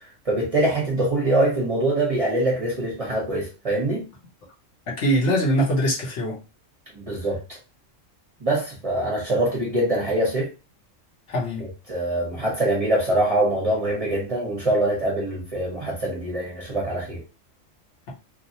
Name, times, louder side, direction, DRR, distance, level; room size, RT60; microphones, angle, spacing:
voice 1, 0.3-4.0 7.0-7.4 8.4-10.5 11.6-17.2, right 1 dB, 35° right, 0.8 m, -24 dB
voice 2, 4.9-6.4 11.3-11.6, equal, 65° left, 1.2 m, -22 dB
3.0 x 2.0 x 2.7 m
omnidirectional pair, 1.3 m